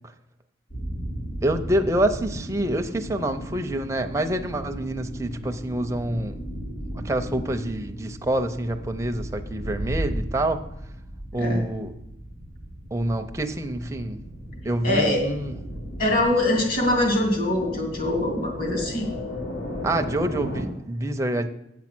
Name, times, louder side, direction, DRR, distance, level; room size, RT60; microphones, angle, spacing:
sound 1, 0.7-20.6, equal, 80° left, 3.1 m, -35 dB
voice 1, 1.4-6.4 7.0-10.6 11.3-11.9 12.9-14.2 14.6-15.6 19.8-21.5, right 1 dB, 15° right, 6 dB, 0.6 m, -26 dB
voice 2, 14.8-15.2 16.0-19.1, left 1 dB, 50° left, 1 dB, 2.7 m, -23 dB
8.5 x 7.4 x 6.0 m, 0.85 s
head